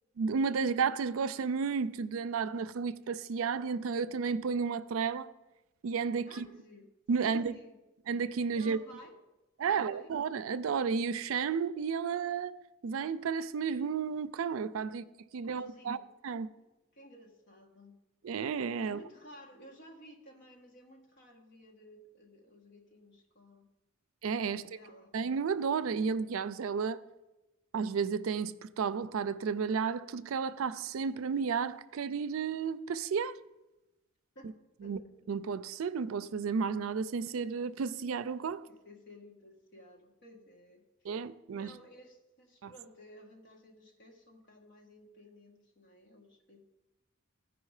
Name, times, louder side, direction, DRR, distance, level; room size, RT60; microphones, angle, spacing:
voice 1, 0.2-5.3 5.8-6.5 7.1-7.6 8.1-8.8 9.6-12.5 12.8-15.0 15.3-16.0 16.2-16.5 18.2-19.0 24.2-24.6 25.1-27.0 27.7-33.3 34.8-35.0 35.3-38.6 41.0-41.7 42.6-42.7, right 5 dB, 75° right, 0.4 m, -32 dB
voice 2, 6.2-6.9 7.2-7.8 8.5-9.2 9.6-10.1 15.4-16.1 16.9-17.9 18.8-23.7 24.5-25.2 34.3-34.5 34.8-35.1 38.6-41.1 41.5-46.6, equal, 55° left, 1.5 m, -55 dB
15.0 x 5.0 x 4.8 m
head